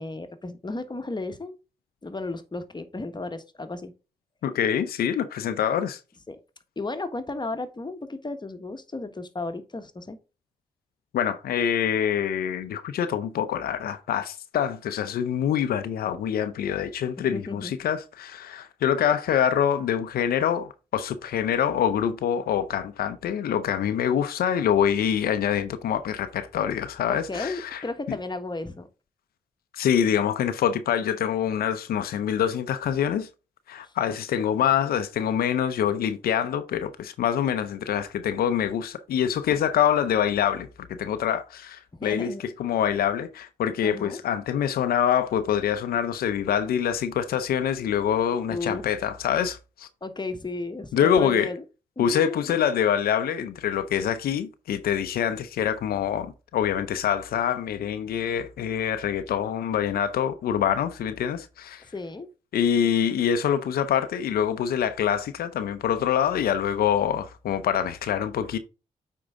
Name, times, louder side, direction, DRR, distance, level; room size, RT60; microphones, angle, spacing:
voice 1, 0.0-1.6 2.0-3.9 6.3-6.4 6.8-10.2 17.3-17.7 27.1-28.9 41.9-42.4 43.8-44.2 48.5-48.8 50.0-51.6 52.0-52.5 61.8-62.3, left 3 dB, 30° left, 1.4 m, -34 dB
voice 2, 4.4-6.0 11.1-28.2 29.7-33.3 33.7-42.3 42.6-49.9 50.9-51.5 52.0-61.8 62.5-68.6, left 9 dB, 85° left, 0.6 m, -25 dB
8.6 x 4.6 x 3.7 m
supercardioid pair, 50°, 15 cm